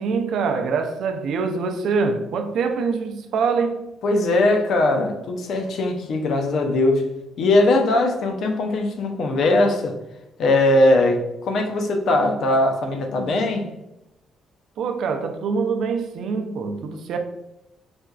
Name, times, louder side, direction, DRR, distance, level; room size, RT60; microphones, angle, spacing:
voice 1, 0.0-3.8 14.8-17.2, right 5 dB, 75° right, 0.4 m, -24 dB
voice 2, 4.0-10.0 10.4-13.7, left 2 dB, 70° left, 0.5 m, -20 dB
4.2 x 2.3 x 2.2 m
cardioid pair, 90°, 0 cm